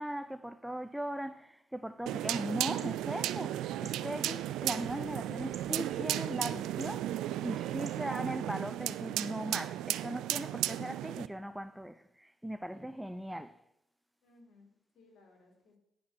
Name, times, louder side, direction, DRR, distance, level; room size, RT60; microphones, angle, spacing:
voice 1, 0.0-13.6, right 1 dB, 5° right, 0.4 m, -39 dB
sound 1, 2.1-11.3, right 13 dB, 90° right, 0.4 m, -35 dB
sound 2, 2.7-7.9, right 5 dB, 45° right, 1.1 m, -55 dB
voice 2, 4.2-4.5 10.6-10.8 12.7-13.0 14.2-15.8, left 2 dB, 70° left, 3.2 m, -61 dB
10.5 x 5.8 x 6.4 m
cardioid pair, 90°, 0 cm